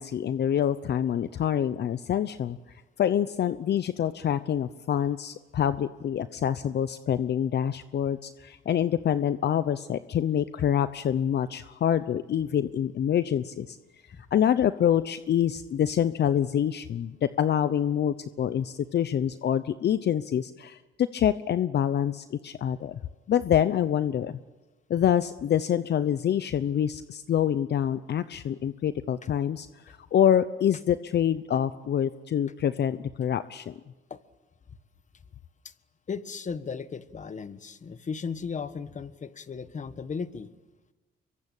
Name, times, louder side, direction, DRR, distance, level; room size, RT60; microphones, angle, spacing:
voice 1, 0.0-2.6 3.0-13.8 14.3-23.0 23.3-24.4 24.9-33.7, left 9 dB, 60° left, 12 dB, 0.9 m, -26 dB
voice 2, 36.1-40.5, left 5 dB, 40° left, 13 dB, 1.4 m, -36 dB
25.0 x 23.5 x 9.0 m, 1.2 s
cardioid pair, 90°, 20 cm